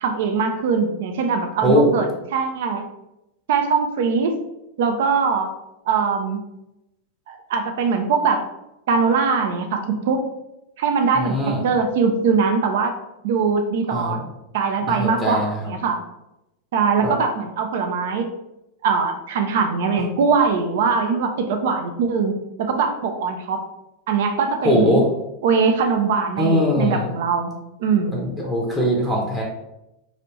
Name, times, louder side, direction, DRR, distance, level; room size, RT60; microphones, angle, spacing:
voice 1, 0.0-2.9 3.5-4.3 4.8-5.5 5.9-6.4 7.3-8.4 8.9-10.2 10.8-11.4 11.6-13.0 13.2-14.2 14.5-16.0 16.7-18.3 18.8-23.6 24.1-25.0 25.4-27.5 27.8-28.3, right 5 dB, 55° right, 5 dB, 0.4 m, -21 dB
voice 2, 1.6-1.9 11.1-11.7 13.9-14.2 14.9-15.7 17.0-17.2 24.6-25.1 26.4-27.1 28.1-29.4, equal, 5° right, -3 dB, 0.7 m, -21 dB
3.2 x 2.4 x 2.9 m, 0.90 s
figure-of-eight pair, 90°, 0 cm